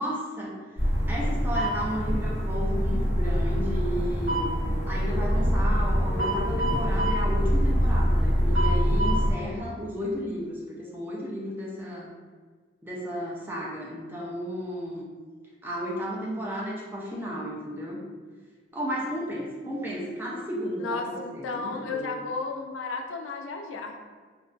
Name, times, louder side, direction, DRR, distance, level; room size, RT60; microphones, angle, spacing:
voice 1, 0.0-4.5 4.9-12.1 12.8-15.1 15.6-18.0 18.7-22.1, equal, 10° right, -4 dB, 0.3 m, -33 dB
sound 1, 0.8-9.3, equal, 75° right, 1.0 m, -24 dB
voice 2, 20.8-24.0, left 4 dB, 90° left, 3 dB, 0.3 m, -33 dB
2.5 x 2.1 x 2.3 m, 1.5 s
head